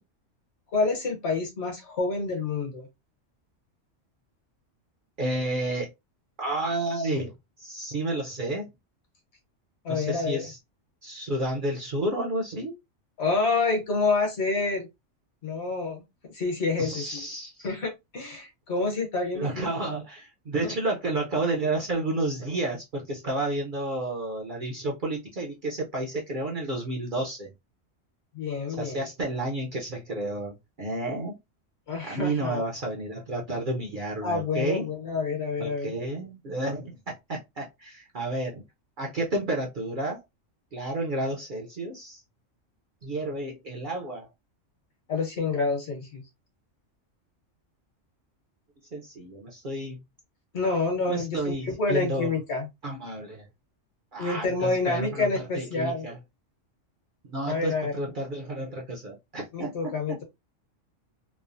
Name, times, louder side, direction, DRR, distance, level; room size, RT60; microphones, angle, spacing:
voice 1, 0.7-2.9 9.8-10.5 13.2-14.9 15.4-17.2 17.6-19.7 20.6-20.7 28.3-29.1 31.9-32.6 34.2-35.9 45.1-46.2 50.5-52.7 54.2-56.1 57.5-58.0 59.5-60.2, left 3 dB, 60° left, 1.2 m, -28 dB
voice 2, 5.2-5.9 6.4-8.7 9.9-10.6 11.0-12.8 16.8-17.7 19.3-27.5 28.7-31.4 32.0-34.9 35.6-38.6 39.0-40.2 40.7-42.2 43.0-44.3 48.9-50.0 51.1-52.3 52.8-53.5 54.1-56.2 57.2-60.2, right 2 dB, 50° right, 0.6 m, -31 dB
3.1 x 2.0 x 2.5 m
omnidirectional pair, 1.3 m